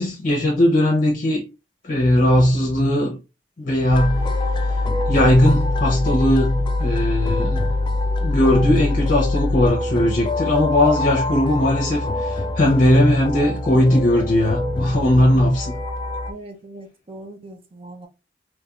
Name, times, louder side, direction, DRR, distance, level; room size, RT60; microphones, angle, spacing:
voice 1, 0.0-1.4 1.9-3.1 3.6-4.3 5.1-7.7 8.2-15.8, left 1 dB, 50° left, 0.7 m, -18 dB
sound 1, 3.9-16.3, left 2 dB, 25° left, 0.4 m, -24 dB
voice 2, 16.3-18.1, right 2 dB, 30° right, 0.5 m, -40 dB
3.3 x 3.1 x 2.3 m
head